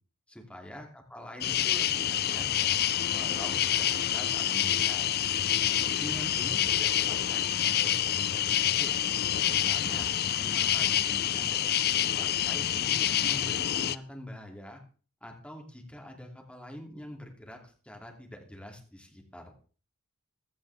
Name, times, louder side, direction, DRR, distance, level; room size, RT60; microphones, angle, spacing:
voice 1, 0.3-2.8 3.1-5.1 5.9-9.0 9.5-10.1 10.4-11.7 12.0-14.8 15.2-17.6 17.8-19.5, equal, 5° left, 1 dB, 2.8 m, -45 dB
sound 1, 1.4-14.0, left 10 dB, 45° left, 0.5 m, -27 dB
16.0 x 13.0 x 3.6 m, 0.39 s
head